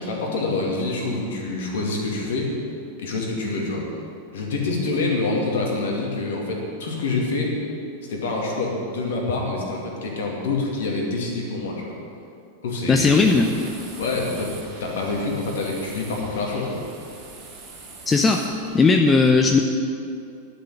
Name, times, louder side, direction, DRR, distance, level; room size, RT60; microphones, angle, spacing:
voice 1, 0.0-2.5 3.0-3.8 4.3-7.5 8.1-11.9 12.6-13.3 14.0-16.8, left 3 dB, 60° left, -1 dB, 2.5 m, -26 dB
voice 2, 12.9-13.5 18.1-18.5 18.7-19.6, left 4 dB, 15° left, 4 dB, 0.7 m, -17 dB
sound 1, 13.0-18.9, right 3 dB, 40° right, 3.2 m, -42 dB
11.0 x 6.8 x 9.0 m, 2.5 s
figure-of-eight pair, 90°, 0 cm